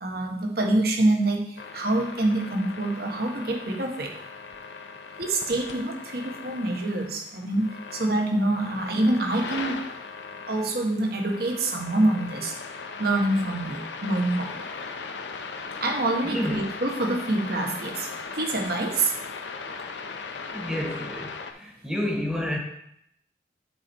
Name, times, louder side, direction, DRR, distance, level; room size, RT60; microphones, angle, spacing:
voice 1, 0.0-4.1 5.2-9.8 10.5-12.5 13.0-14.6 15.8-18.1 18.4-19.1, right 2 dB, 60° right, 2 dB, 1.2 m, -26 dB
sound 1, 1.6-21.5, left 4 dB, 80° left, 0.7 m, -38 dB
voice 2, 16.2-16.6 20.5-22.6, left 1 dB, 5° right, 0 dB, 1.1 m, -30 dB
8.4 x 4.4 x 4.4 m, 0.74 s
head